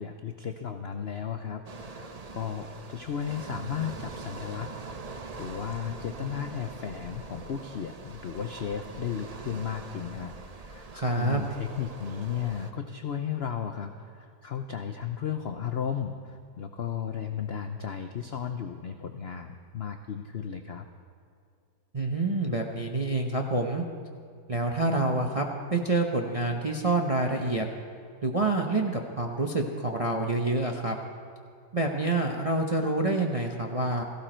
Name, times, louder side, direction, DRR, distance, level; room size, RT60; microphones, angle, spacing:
voice 1, 0.0-1.6 1.9-4.7 5.1-20.8, left 8 dB, 70° left, 6 dB, 0.6 m, -35 dB
sound 1, 1.6-12.7, right 3 dB, 80° right, 0.3 m, -43 dB
voice 2, 10.9-11.4 21.9-23.8 24.5-25.4 25.7-27.7 28.2-30.9 31.7-34.0, right 2 dB, 35° right, 1 dB, 0.6 m, -27 dB
17.0 x 15.5 x 4.4 m, 2.3 s
omnidirectional pair, 1.9 m